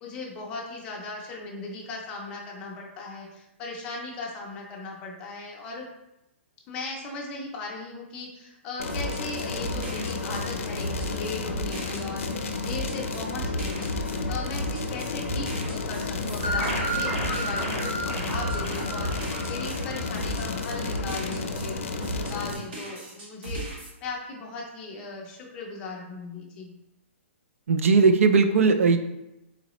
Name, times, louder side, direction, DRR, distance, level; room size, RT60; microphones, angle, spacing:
voice 1, 0.0-5.9 6.7-26.7, left 3 dB, 15° left, -1 dB, 0.4 m, -38 dB
sound 1, 8.8-22.5, left 4 dB, 90° left, 0.5 m, -32 dB
sound 2, 8.9-21.7 22.0-23.9, right 1 dB, 45° right, 1.0 m, -35 dB
sound 3, 16.4-20.8, right 1 dB, 25° right, 0.9 m, -32 dB
voice 2, 27.7-29.0, right 4 dB, 80° right, 8 dB, 0.4 m, -18 dB
3.9 x 3.1 x 3.0 m, 0.92 s
hypercardioid pair, 175°, 7 cm